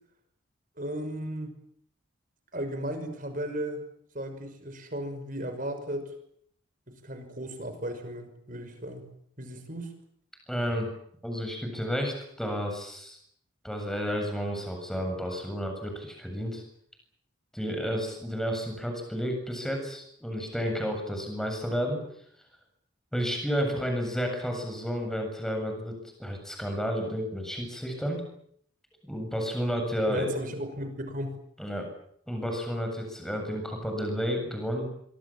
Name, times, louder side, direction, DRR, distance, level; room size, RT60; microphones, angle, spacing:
voice 1, 0.8-1.5 2.5-3.8 4.1-6.1 7.0-9.1 9.4-9.9 30.1-31.4, right 1 dB, 40° right, 8 dB, 5.9 m, -35 dB
voice 2, 10.5-10.9 11.2-13.2 13.6-16.6 17.5-22.0 23.1-28.2 29.0-30.3 31.6-31.9 32.3-34.9, equal, ahead, 3 dB, 7.6 m, -31 dB
25.5 x 25.0 x 7.6 m, 0.67 s
head